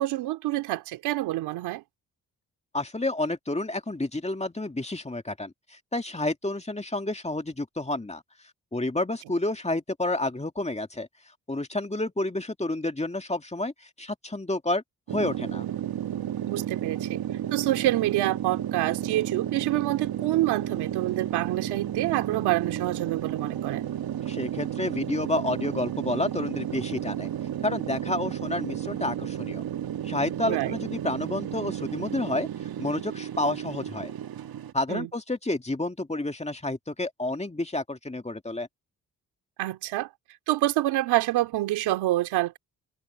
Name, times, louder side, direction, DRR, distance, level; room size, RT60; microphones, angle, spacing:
voice 1, 0.0-1.8 16.5-17.2 17.5-23.9 30.4-30.8 34.9-35.1 39.6-40.1 40.5-42.6, right 16 dB, 85° right, 2.7 m, -27 dB
voice 2, 2.7-8.2 8.7-11.1 11.5-14.8 15.1-15.6 24.3-27.3 27.6-29.6 30.0-32.5 32.8-34.1 34.7-38.7, left 2 dB, 15° left, 2.3 m, -30 dB
sound 1, 15.1-34.7, right 11 dB, 65° right, 1.7 m, -32 dB
supercardioid pair, 45°, 38 cm